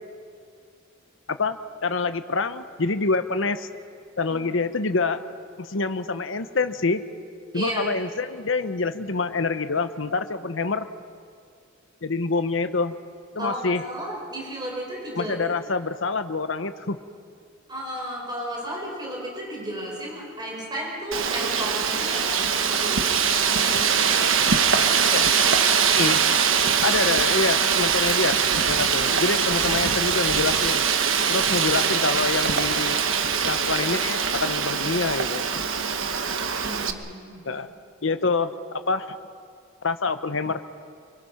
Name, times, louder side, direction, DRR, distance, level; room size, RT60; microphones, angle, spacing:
voice 1, 1.3-3.7 4.2-5.2 5.6-7.0 7.5-10.9 12.0-12.9 13.3-13.8 15.2-17.0 25.0-25.3 25.9-26.2 26.8-30.8 31.3-33.0 33.4-35.4 37.5-37.7 38.0-39.2 39.8-40.6, left 3 dB, 65° left, 9 dB, 1.0 m, -26 dB
voice 2, 7.5-8.0 13.4-15.6 17.7-23.2 23.5-24.3 36.6-37.6, right 1 dB, 20° right, -1 dB, 4.9 m, -34 dB
Wind, 21.1-36.9, right 6 dB, 75° right, 1.2 m, -22 dB
25.5 x 24.5 x 5.9 m, 2.2 s
head